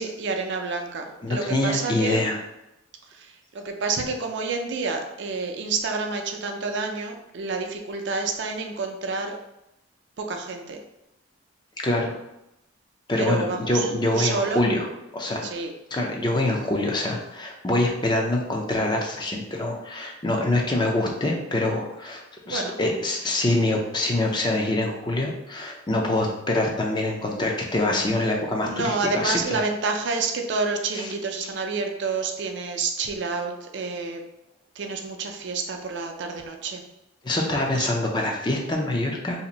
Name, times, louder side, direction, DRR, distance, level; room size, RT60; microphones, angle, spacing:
voice 1, 0.0-2.2 3.1-9.4 10.2-10.8 13.2-14.6 15.4-15.7 22.4-22.8 28.6-34.2 34.8-36.8 37.7-37.9, right 4 dB, 60° right, 3 dB, 0.5 m, -29 dB
voice 2, 1.2-2.4 11.8-12.1 13.1-14.9 15.1-15.5 15.9-29.6 30.9-31.1 37.2-39.5, left 2 dB, 25° left, 0 dB, 0.5 m, -25 dB
2.7 x 2.5 x 4.0 m, 0.87 s
head